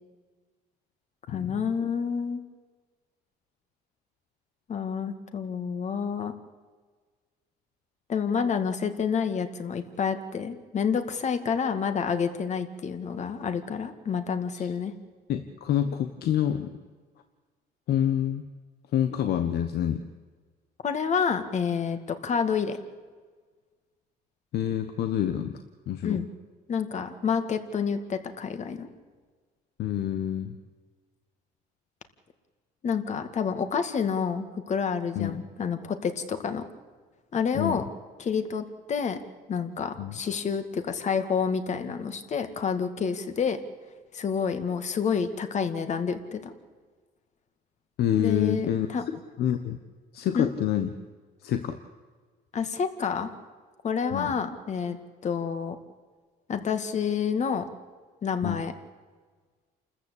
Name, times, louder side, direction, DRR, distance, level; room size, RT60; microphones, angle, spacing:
voice 1, 1.3-2.4 4.7-6.3 8.1-14.9 20.8-22.8 26.0-26.3 26.7-28.9 32.8-36.6 37.3-37.8 38.2-39.2 39.5-43.6 44.1-46.5 48.2-49.0 50.3-50.5 52.5-53.3 53.8-55.0 55.2-55.8 56.5-57.7 58.2-58.7, left 6 dB, 45° left, 8 dB, 2.1 m, -28 dB
voice 2, 15.3-16.7 17.9-18.4 18.9-20.0 24.5-25.6 25.9-26.2 29.8-30.6 35.1-35.4 37.5-37.8 40.0-40.2 48.0-48.9 49.4-49.8 50.1-50.9 51.4-51.8 54.1-54.3 58.4-58.6, left 10 dB, 70° left, 8 dB, 1.3 m, -27 dB
28.5 x 14.0 x 8.5 m, 1.5 s
cardioid pair, 110°, 17 cm